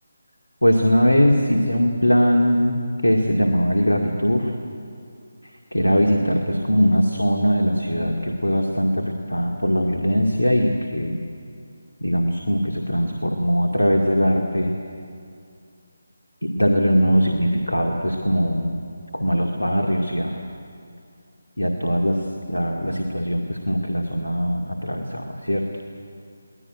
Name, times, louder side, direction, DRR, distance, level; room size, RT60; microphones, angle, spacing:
voice 1, 0.6-4.5 5.7-11.2 12.0-14.7 16.4-18.7 19.1-20.4 21.6-22.2 22.5-25.7, equal, 80° left, 2 dB, 2.3 m, -21 dB
22.5 x 18.5 x 10.0 m, 2.5 s
figure-of-eight pair, 155°, 0 cm